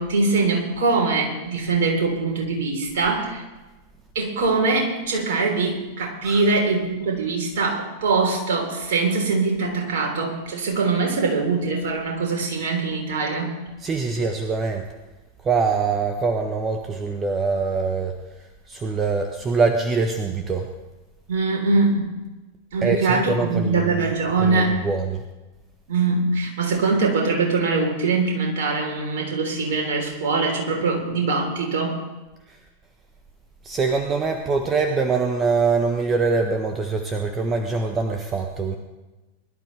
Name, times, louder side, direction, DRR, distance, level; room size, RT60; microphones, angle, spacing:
voice 1, 0.0-3.4 4.1-13.6 21.3-22.1 22.7-24.8 25.9-32.0, right 3 dB, 55° right, 1 dB, 3.8 m, -22 dB
voice 2, 13.8-14.9 15.4-20.7 22.8-24.0 24.4-25.2 32.5-32.6 33.6-38.8, right 4 dB, 25° right, 4 dB, 1.3 m, -24 dB
21.5 x 12.0 x 3.4 m, 1.1 s
figure-of-eight pair, 90°, 0 cm